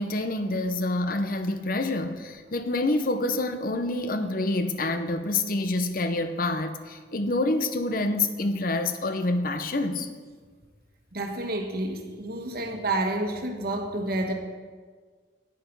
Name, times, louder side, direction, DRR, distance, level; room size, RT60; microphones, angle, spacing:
voice 1, 0.0-10.1, left 2 dB, 50° left, 9 dB, 0.8 m, -27 dB
voice 2, 11.1-14.3, right 2 dB, 55° right, 4 dB, 1.3 m, -29 dB
9.3 x 8.7 x 5.4 m, 1.5 s
head